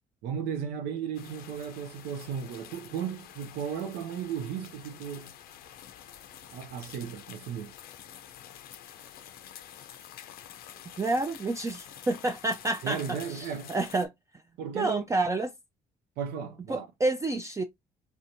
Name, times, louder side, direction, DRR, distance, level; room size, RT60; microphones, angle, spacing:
voice 1, 0.2-5.3 6.5-7.7 12.8-13.7 14.6-15.1 16.2-16.9, right 7 dB, 85° right, 0.4 m, -35 dB
sound 1, 1.1-14.1, left 10 dB, 75° left, 0.5 m, -48 dB
voice 2, 11.0-13.0 13.3-14.4 14.7-15.5 16.7-17.6, right 2 dB, 20° right, 0.4 m, -29 dB
3.3 x 2.7 x 2.6 m
supercardioid pair, 75°, 16 cm